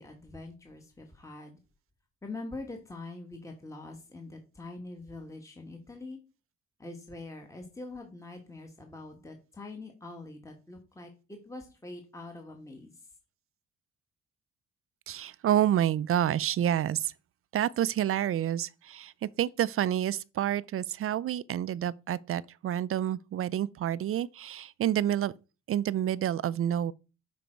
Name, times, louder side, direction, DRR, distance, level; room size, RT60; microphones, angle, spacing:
voice 1, 0.0-1.6 2.2-6.2 6.8-12.9, left 2 dB, 10° left, 1.5 m, -44 dB
voice 2, 15.1-17.1 17.5-25.3 25.7-26.9, right 11 dB, 50° right, 0.4 m, -28 dB
7.2 x 5.0 x 4.5 m
cardioid pair, 90°, 30 cm